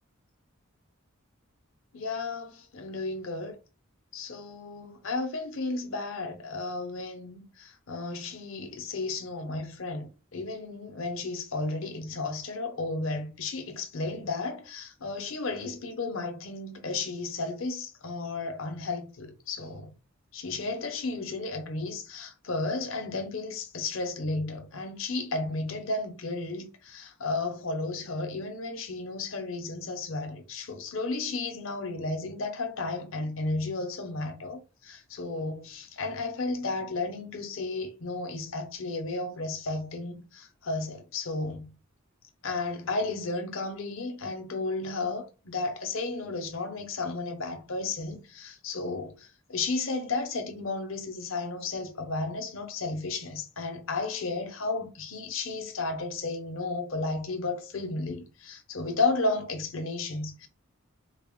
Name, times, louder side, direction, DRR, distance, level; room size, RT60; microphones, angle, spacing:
voice 1, 1.9-3.6 4.1-19.9 20.3-41.7 42.4-60.5, left 3 dB, 65° left, 0.7 m, -33 dB
3.9 x 2.1 x 3.5 m
head